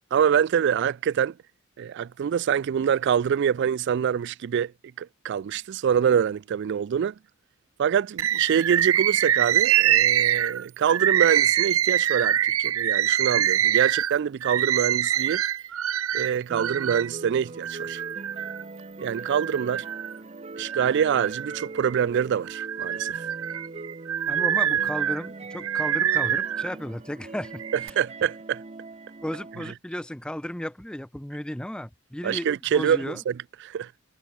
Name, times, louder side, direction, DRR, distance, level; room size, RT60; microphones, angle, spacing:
voice 1, 0.1-1.3 1.8-4.7 5.0-7.1 7.8-15.4 16.1-18.0 19.0-19.9 20.6-23.2 28.0-28.6 32.2-33.9, right 8 dB, 55° right, 0.3 m, -25 dB
Bird, 8.2-17.1 17.6-18.6 19.2-20.2 20.6-22.0 22.5-26.7 27.4-27.9, right 10 dB, 80° right, 0.7 m, -25 dB
sound 1, 16.5-29.7, right 3 dB, 30° right, 0.8 m, -41 dB
voice 2, 24.3-27.6 29.2-33.2, left 1 dB, 5° left, 0.5 m, -34 dB
head